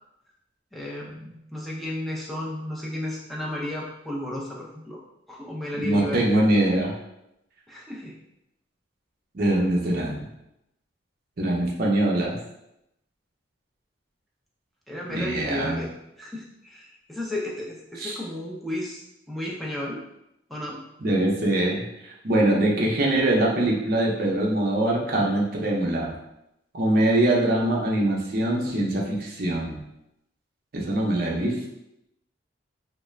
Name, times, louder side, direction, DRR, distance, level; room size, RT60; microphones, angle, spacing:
voice 1, 0.7-5.0 5.3-6.2 7.7-8.2 14.9-15.9 16.2-19.0 19.3-20.0 20.5-20.8 31.1-31.2, left 1 dB, ahead, -4 dB, 0.3 m, -33 dB
voice 2, 5.7-6.9 9.3-10.3 11.4-12.3 15.1-15.8 18.0-18.2 21.0-26.1 26.7-29.8 30.7-31.7, right 1 dB, 50° right, -2 dB, 0.5 m, -23 dB
2.3 x 2.1 x 3.1 m, 0.85 s
head